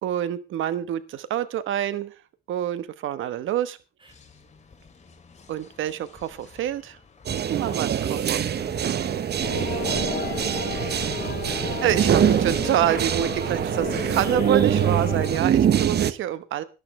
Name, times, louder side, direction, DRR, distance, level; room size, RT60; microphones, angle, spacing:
voice 1, 0.0-2.1 2.5-3.8 5.5-7.0 7.5-8.4 11.8-16.6, right 11 dB, 80° right, 14 dB, 1.3 m, -27 dB
sound 1, 4.1-11.6, left 4 dB, 35° left, 3.2 m, -49 dB
sound 2, 7.2-16.1, right 9 dB, 55° right, 1.0 m, -24 dB
voice 2, 7.4-11.4, right 2 dB, 25° right, 7 dB, 4.0 m, -45 dB
sound 3, 9.4-15.4, left 7 dB, 50° left, 4.4 m, -33 dB
19.0 x 11.5 x 3.3 m, 0.31 s
cardioid pair, 90°, 20 cm